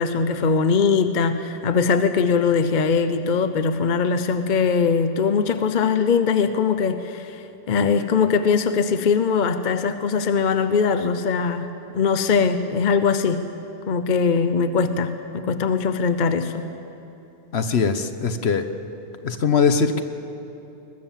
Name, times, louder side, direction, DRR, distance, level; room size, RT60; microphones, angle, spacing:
voice 1, 0.0-13.5 13.9-16.7, left 5 dB, 45° left, 10 dB, 0.9 m, -21 dB
voice 2, 17.5-18.6 19.2-20.0, left 5 dB, 65° left, 9 dB, 1.3 m, -21 dB
22.0 x 20.5 x 7.5 m, 3.0 s
omnidirectional pair, 1.2 m